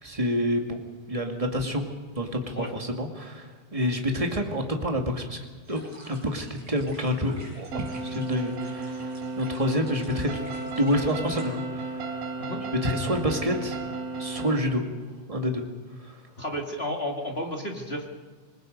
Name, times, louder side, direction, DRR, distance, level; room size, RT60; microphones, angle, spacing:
voice 1, 0.0-0.8 1.1-1.8 2.1-5.4 5.7-5.8 6.1-9.1 9.4-10.4 10.8-12.0 12.8-13.9 14.2-14.8 15.3-15.6 16.0-16.2, equal, 15° right, 3 dB, 1.3 m, -28 dB
sound 1, 5.6-11.5, right 1 dB, 35° right, 7.4 m, -50 dB
sound 2, 7.7-14.6, right 3 dB, 90° right, 3.3 m, -34 dB
voice 2, 16.4-18.0, equal, 25° left, 2 dB, 1.5 m, -32 dB
26.5 x 20.5 x 5.3 m, 1.5 s
omnidirectional pair, 3.8 m